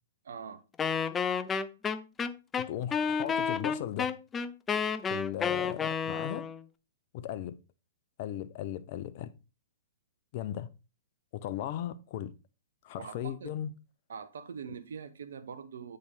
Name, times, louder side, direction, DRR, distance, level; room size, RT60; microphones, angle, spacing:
voice 1, 0.2-0.6 13.0-13.5 14.1-16.0, right 6 dB, 70° right, 0.9 m, -43 dB
Wind instrument woodwind instrument, 0.8-6.6, left 6 dB, 15° left, 0.5 m, -31 dB
voice 2, 2.6-4.1 5.1-6.4 7.1-7.6 8.2-9.3 10.3-10.7 11.3-12.3 12.8-13.7, left 11 dB, 45° left, 0.8 m, -37 dB
8.4 x 5.2 x 4.1 m
hypercardioid pair, 125°, 0 cm